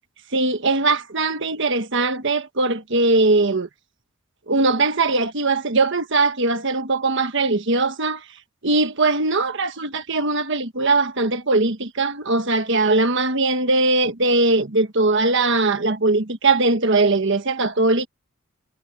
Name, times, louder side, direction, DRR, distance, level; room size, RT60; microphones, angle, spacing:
voice 1, 0.3-3.7 4.5-8.2 8.6-18.1, right 3 dB, 60° right, 1.4 m, -20 dB
head